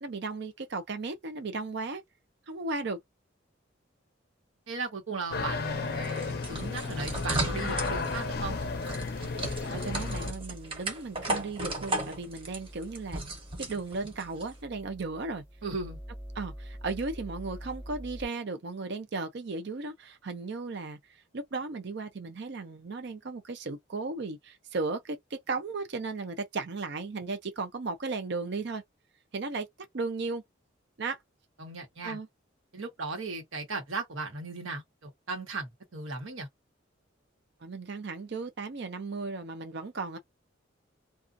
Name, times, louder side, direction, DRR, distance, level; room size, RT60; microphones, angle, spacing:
voice 1, 0.0-2.0 2.5-3.0 9.7-13.2 13.6-15.4 16.4-21.0 21.3-28.8 29.3-29.7 29.9-30.4 31.0-31.2 32.0-32.3 37.6-40.2, right 3 dB, 60° right, 0.5 m, -35 dB
voice 2, 4.7-8.6 15.6-16.0 31.6-32.2 32.7-36.5, right 3 dB, 85° right, 1.2 m, -37 dB
sound 1, 5.3-10.3, left 4 dB, 50° left, 0.5 m, -33 dB
sound 2, 5.8-14.5, right 2 dB, 25° right, 0.8 m, -36 dB
sound 3, 7.0-18.2, equal, 10° right, 0.5 m, -45 dB
2.4 x 2.4 x 2.5 m
head